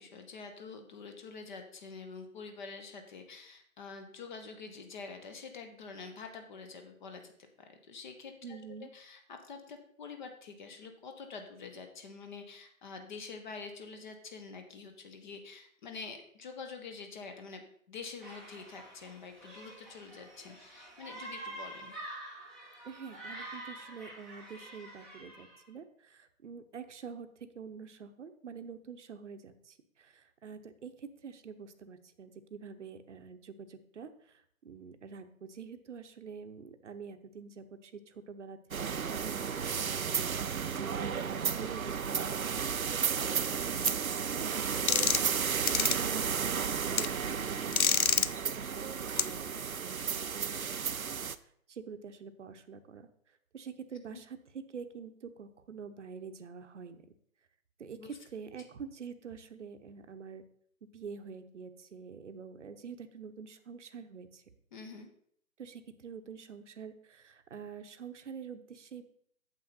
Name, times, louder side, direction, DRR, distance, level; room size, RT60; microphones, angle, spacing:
voice 1, 0.0-7.3 7.6-17.6 17.9-21.9 45.8-45.9 54.1-54.2 58.0-58.1 64.7-65.1, left 4 dB, 35° left, 6 dB, 1.2 m, -46 dB
voice 2, 8.4-8.9 22.8-38.6 38.9-50.9 51.7-57.1 57.8-60.4 60.9-64.4 65.6-69.0, right 6 dB, 60° right, 9 dB, 1.0 m, -47 dB
sound 1, 18.2-25.6, right 1 dB, ahead, 0.8 m, -47 dB
sound 2, 38.7-51.4, right 6 dB, 85° right, 0.6 m, -33 dB
sound 3, 43.8-43.9 44.9-45.3 45.7-46.0 47.0-47.1 47.7-48.3 49.2-49.3, left 6 dB, 90° left, 0.6 m, -26 dB
8.9 x 7.1 x 4.2 m, 0.65 s
figure-of-eight pair, 130°, 41 cm